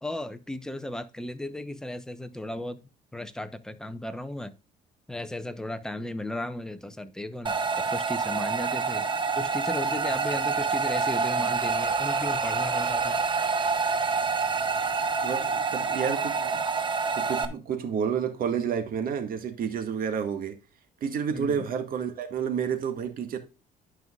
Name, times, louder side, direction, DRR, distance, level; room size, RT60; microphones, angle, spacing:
voice 1, 0.0-2.8 3.1-4.5 5.1-9.1 9.4-13.2 21.3-21.7, left 1 dB, 5° left, 0.9 m, -35 dB
sound 1, 7.5-17.5, right 5 dB, 30° right, 1.1 m, -27 dB
voice 2, 15.2-16.6 17.1-20.6 21.0-23.4, right 7 dB, 55° right, 2.0 m, -30 dB
12.5 x 5.6 x 2.4 m
cardioid pair, 110°, 17 cm